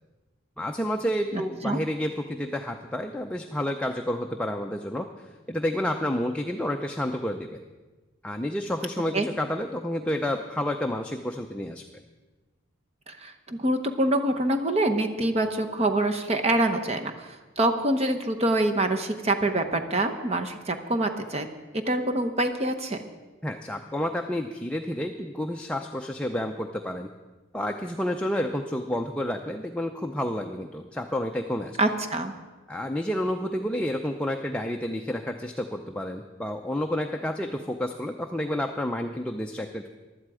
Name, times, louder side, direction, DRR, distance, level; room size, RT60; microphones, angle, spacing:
voice 1, 0.6-7.6 8.2-11.8 23.4-27.1 27.5-31.8 32.7-39.9, left 1 dB, 5° left, 3 dB, 0.5 m, -30 dB
voice 2, 1.3-1.8 9.1-9.3 13.1-21.5 21.7-23.0 31.8-32.3, right 1 dB, 30° right, 6 dB, 0.9 m, -25 dB
16.0 x 11.5 x 4.9 m, 1.2 s
head